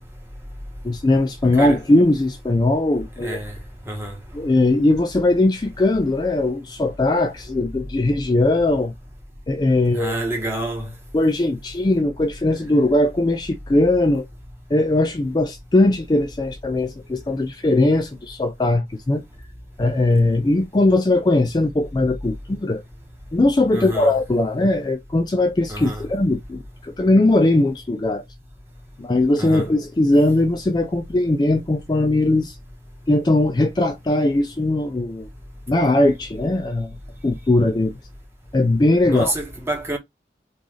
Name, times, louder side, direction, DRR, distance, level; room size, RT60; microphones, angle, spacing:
voice 1, 0.8-3.4 4.3-8.9 9.5-10.1 11.1-14.3 14.7-19.2 19.8-22.8 23.3-28.2 29.0-32.6 33.1-35.3 35.7-36.9 37.2-37.9 38.5-39.3, left 2 dB, 25° left, 0.3 m, -19 dB
voice 2, 3.2-3.5 3.9-4.1 9.9-10.9 23.7-24.1 25.7-26.0 29.4-29.7 39.0-40.0, right 1 dB, 15° right, 0.9 m, -27 dB
3.8 x 2.5 x 3.1 m
head